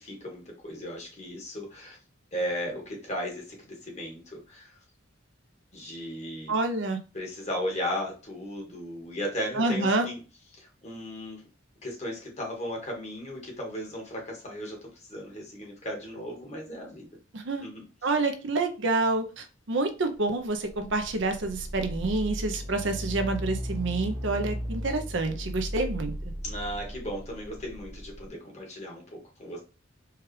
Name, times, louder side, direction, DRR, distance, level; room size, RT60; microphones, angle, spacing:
voice 1, 0.0-2.0 2.3-4.8 5.7-6.5 7.1-10.2 10.5-11.4 11.8-17.1 17.6-17.8 26.4-29.6, equal, 35° left, 1.4 m, -36 dB
voice 2, 6.5-7.0 9.5-10.1 17.3-17.7 18.0-26.1, right 3 dB, 60° right, 0.6 m, -28 dB
sound 1, 20.5-28.3, equal, 20° right, 0.9 m, -36 dB
4.5 x 2.4 x 3.1 m
head